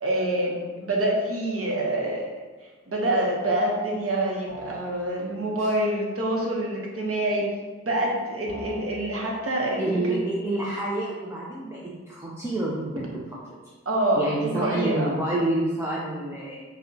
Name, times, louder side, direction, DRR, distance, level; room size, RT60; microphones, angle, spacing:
voice 1, 0.0-2.2 2.6-7.4 7.8-9.8 10.1-10.2 13.9-15.2, right 1 dB, 50° right, -2 dB, 0.7 m, -26 dB
sound 1, 4.5-4.9 8.5-8.9, right 1 dB, 15° left, 1.3 m, -40 dB
voice 2, 9.8-13.1 14.1-16.7, right 2 dB, 10° right, -5 dB, 0.4 m, -28 dB
4.6 x 2.1 x 2.7 m, 1.3 s
wide cardioid pair, 85°, 29 cm